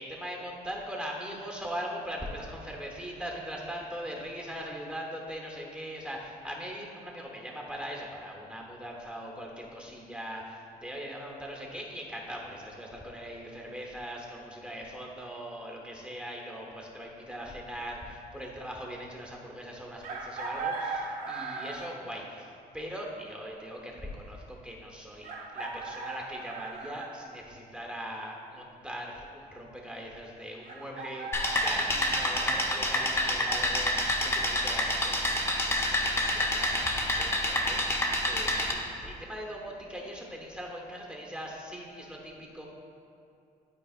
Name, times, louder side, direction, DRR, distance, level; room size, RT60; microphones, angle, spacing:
voice 1, 0.0-33.9 34.2-42.7, equal, 5° right, -1 dB, 1.1 m, -40 dB
Chicken rooster, 20.0-22.0 23.7-23.8 25.2-27.2 30.6-32.5, right 4 dB, 60° right, 1.0 m, -38 dB
sound 1, 31.3-38.7, left 1 dB, 15° left, 0.8 m, -28 dB
12.0 x 4.7 x 2.5 m, 2.5 s
cardioid pair, 120°, 16 cm